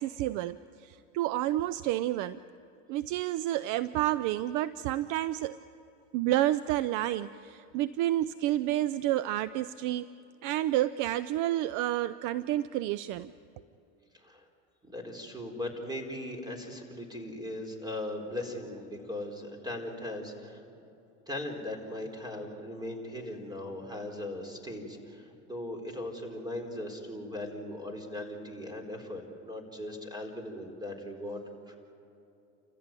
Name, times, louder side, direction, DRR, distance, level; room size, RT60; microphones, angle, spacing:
voice 1, 0.0-2.4 2.9-5.6 6.1-10.1 10.4-13.3, right 14 dB, 50° right, 16 dB, 0.6 m, -30 dB
voice 2, 14.1-14.5 14.8-20.8 21.3-31.8, left 1 dB, 10° right, 4 dB, 4.3 m, -39 dB
29.0 x 14.5 x 9.1 m, 2.7 s
supercardioid pair, 105°, 38 cm